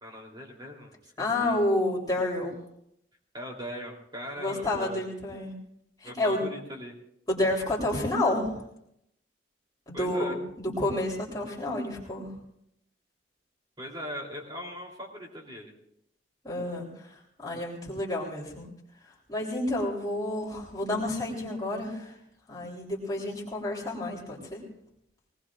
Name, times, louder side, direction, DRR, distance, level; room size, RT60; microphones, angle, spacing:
voice 1, 0.0-1.6 3.3-5.1 6.0-6.9 9.9-10.4 13.8-15.7, equal, 25° right, -1 dB, 3.4 m, -40 dB
voice 2, 1.2-2.5 4.4-5.5 6.0-6.4 7.3-8.6 9.9-12.3 16.4-18.7 19.0-22.1 22.5-24.6, left 1 dB, 20° left, -4 dB, 3.6 m, -30 dB
22.0 x 19.5 x 2.5 m, 0.75 s
head